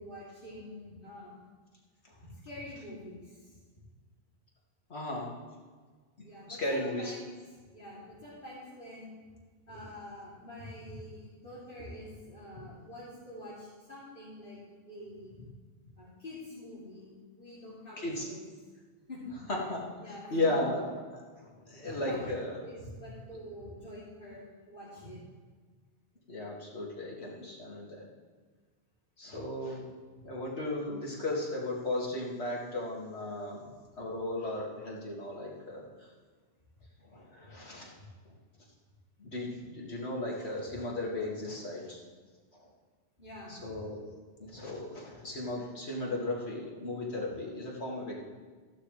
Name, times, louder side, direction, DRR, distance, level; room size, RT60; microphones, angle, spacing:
voice 1, 0.0-1.4 2.3-3.6 6.2-7.4 7.7-9.2 9.7-14.6 14.8-15.3 16.0-17.1 17.3-18.4 19.1-19.2 20.0-20.6 21.7-22.3 22.6-25.2 43.2-43.8, left 1 dB, 55° left, -10 dB, 3.2 m, -46 dB
voice 2, 4.9-5.3 6.5-7.2 18.0-18.2 19.7-19.8 20.3-20.8 21.1-21.2 21.7-22.6 26.3-28.0 29.2-29.8 30.2-33.6 34.0-35.8 37.1-37.9 39.2-42.0 42.6-42.7 43.5-44.0 44.4-48.2, left 2 dB, 75° left, -3 dB, 2.5 m, -35 dB
14.5 x 11.5 x 3.2 m, 1.4 s
omnidirectional pair, 1.1 m